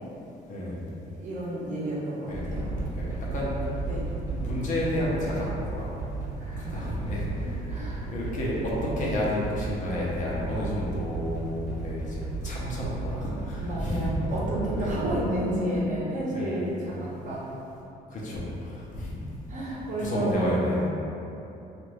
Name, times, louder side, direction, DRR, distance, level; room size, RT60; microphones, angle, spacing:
voice 1, 0.5-0.9 2.2-2.5 2.9-3.5 3.8-3.9 4.3-6.1 6.5-14.3 14.7-15.0 16.3-16.6 18.1-19.4 20.0-20.9, left 1 dB, 50° left, -5 dB, 0.7 m, -31 dB
voice 2, 1.2-2.7 3.8-4.1 6.4-6.9 7.7-8.0 13.6-17.4 19.5-20.6, right 1 dB, 45° right, -7 dB, 0.9 m, -31 dB
sound 1, 2.3-15.2, right 3 dB, 20° right, 0.9 m, -34 dB
2.7 x 2.5 x 3.3 m, 2.9 s
cardioid pair, 110°, 17 cm